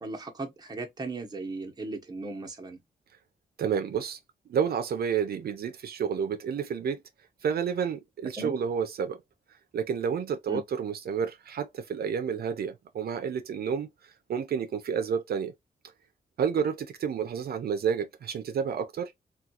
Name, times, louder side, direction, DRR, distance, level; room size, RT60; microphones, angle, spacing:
voice 1, 0.0-2.8 8.4-8.5 10.5-10.6, right 2 dB, 25° right, 0.8 m, -37 dB
voice 2, 3.6-4.2 4.5-7.0 7.4-9.2 9.7-15.5 16.4-19.1, right 7 dB, 75° right, 0.4 m, -30 dB
3.6 x 2.3 x 2.8 m
wide cardioid pair, 130°, 16 cm